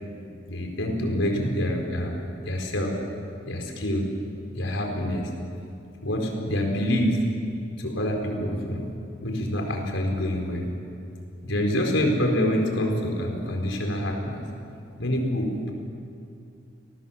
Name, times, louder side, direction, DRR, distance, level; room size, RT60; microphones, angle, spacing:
voice 1, 0.5-3.0 3.4-4.1 4.5-5.3 6.0-7.2 7.8-8.9 9.2-10.7 11.4-14.5 15.0-15.7, left 1 dB, 85° left, 2 dB, 4.5 m, -26 dB
29.5 x 19.0 x 7.2 m, 2.6 s
head